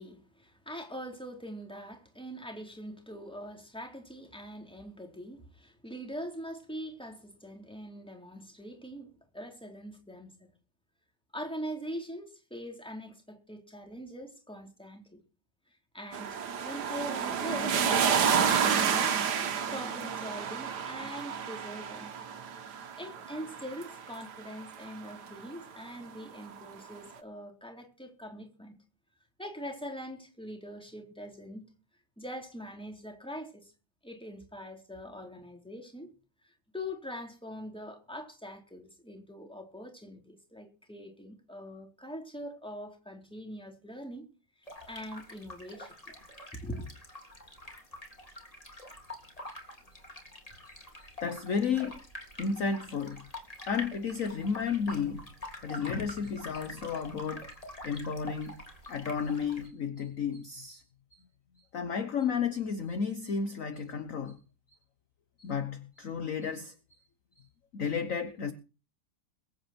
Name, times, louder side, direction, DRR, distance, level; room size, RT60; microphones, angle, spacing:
voice 1, 0.0-10.3 11.3-15.2 15.7-19.2 19.7-22.1 23.0-28.8 29.4-31.7 32.2-33.7 34.0-36.1 36.4-44.3 44.6-45.9 46.5-46.9, equal, 5° left, 3.8 m, -43 dB
sound 1, 16.1-25.2 26.5-26.6, right 7 dB, 65° right, 1.8 m, -30 dB
sound 2, 44.6-59.7, left 1 dB, 20° left, 3.3 m, -46 dB
voice 2, 50.6-52.0 52.4-53.3 53.7-55.2 55.6-57.5 57.8-60.8 61.1-61.2 61.7-64.4 65.4-66.7 67.7-68.5, left 6 dB, 50° left, 1.4 m, -33 dB
22.0 x 8.9 x 4.5 m
omnidirectional pair, 2.0 m